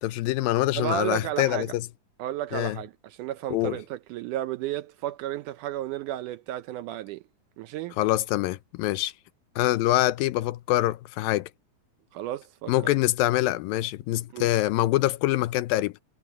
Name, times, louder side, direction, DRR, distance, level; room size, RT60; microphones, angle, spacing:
voice 1, 0.0-1.9 2.5-2.8 3.5-3.8 8.0-9.1 9.6-11.5 12.7-15.9, left 16 dB, 85° left, 2.5 m, -25 dB
voice 2, 0.8-1.7 2.2-7.2 7.6-8.0 12.1-12.9 14.3-14.5, right 13 dB, 80° right, 1.9 m, -33 dB
omnidirectional pair, 4.1 m